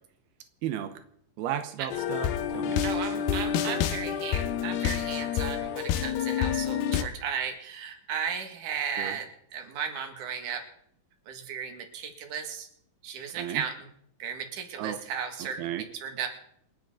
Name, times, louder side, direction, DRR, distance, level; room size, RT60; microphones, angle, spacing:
voice 1, 0.6-0.9 1.4-2.8 9.0-9.1 13.4-13.6 14.8-15.0 15.4-15.8, right 11 dB, 90° right, 8 dB, 3.0 m, -34 dB
sound 1, 1.9-7.0, left 9 dB, 85° left, 2.9 m, -28 dB
voice 2, 2.8-10.6 11.3-12.7 13.0-13.9 14.2-16.3, right 7 dB, 60° right, 5 dB, 3.2 m, -35 dB
29.0 x 10.5 x 3.8 m, 0.69 s
omnidirectional pair, 4.5 m